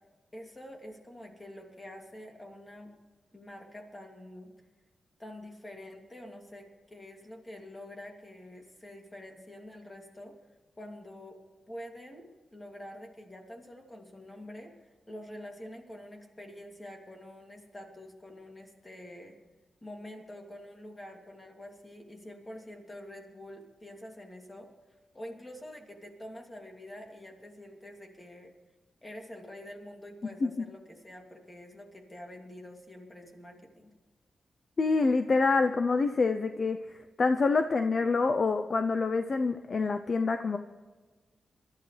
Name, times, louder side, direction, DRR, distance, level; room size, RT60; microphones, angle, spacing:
voice 1, 0.3-2.9 3.3-4.5 5.2-10.3 10.8-11.4 11.7-12.2 12.5-19.4 19.8-24.7 25.1-28.5 29.0-33.9, left 1 dB, 20° left, 2 dB, 2.8 m, -46 dB
voice 2, 34.8-40.6, left 4 dB, 40° left, 8 dB, 0.6 m, -26 dB
27.0 x 13.0 x 3.3 m, 1.3 s
wide cardioid pair, 130°, 0 cm